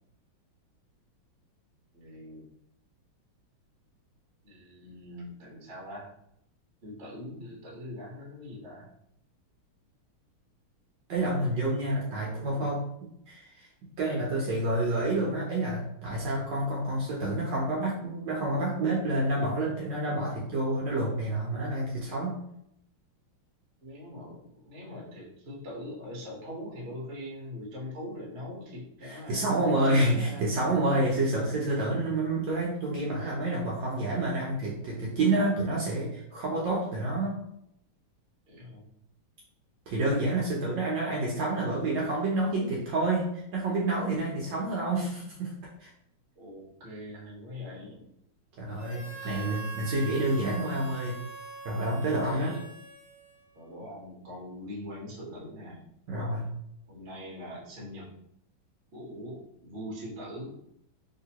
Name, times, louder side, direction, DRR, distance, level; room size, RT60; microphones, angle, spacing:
voice 1, 1.9-2.4 4.4-6.1 6.8-8.9 11.9-12.7 23.8-29.6 29.8-30.6 38.5-38.9 44.4-44.7 46.4-48.1 49.0-49.5 50.1-50.2 52.1-52.6 53.5-55.8 56.9-58.1 58.9-60.6, left 1 dB, 40° right, -5 dB, 1.0 m, -42 dB
voice 2, 11.1-13.7 14.0-22.4 29.0-37.4 39.9-45.5 45.8-45.9 48.6-51.2 51.6-52.6 56.1-56.5, right 2 dB, 70° right, -4 dB, 1.2 m, -28 dB
Harmonica, 48.7-53.6, right 3 dB, 55° left, 0.5 m, -43 dB
3.3 x 2.9 x 2.8 m, 0.74 s
omnidirectional pair, 2.3 m